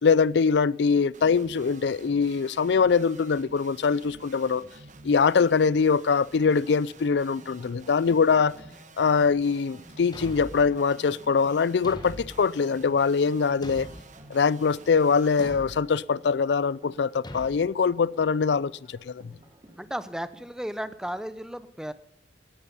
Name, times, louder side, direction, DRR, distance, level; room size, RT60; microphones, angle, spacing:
voice 1, 0.0-4.6 5.0-8.5 9.0-13.9 14.3-19.3, left 5 dB, 70° left, 0.4 m, -23 dB
sound 1, 1.1-15.5, right 3 dB, 45° right, 1.3 m, -51 dB
sound 2, 6.4-20.4, equal, 25° right, 2.7 m, -54 dB
Thump thud, 10.1-10.7 11.8-12.4 13.6-14.2 15.4-15.8 17.2-17.6, left 1 dB, 25° left, 1.3 m, -40 dB
voice 2, 19.8-21.9, equal, 5° right, 0.7 m, -34 dB
18.0 x 10.0 x 5.4 m
head